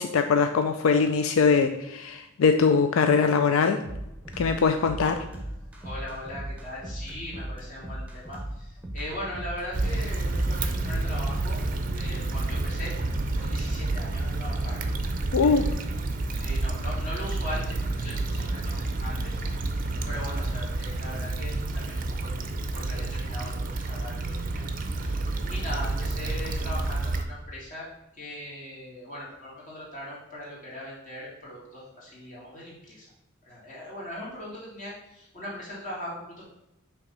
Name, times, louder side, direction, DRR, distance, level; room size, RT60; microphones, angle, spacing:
voice 1, 0.0-3.8 4.4-5.1 15.3-15.6, left 5 dB, 85° left, 7 dB, 0.4 m, -22 dB
sound 1, 3.8-11.7, right 1 dB, 5° right, 0.8 m, -37 dB
voice 2, 5.8-11.6 11.9-12.9 13.4-14.8 15.4-15.9 16.3-19.4 19.7-22.3 22.7-24.6 24.9-25.1 25.5-27.9 28.1-33.1 33.4-36.4, left 1 dB, 40° left, -6 dB, 2.4 m, -39 dB
Stream / Traffic noise roadway noise / Trickle dribble, 9.7-27.2, right 2 dB, 40° right, 0.5 m, -29 dB
5.6 x 3.5 x 5.4 m, 0.86 s
head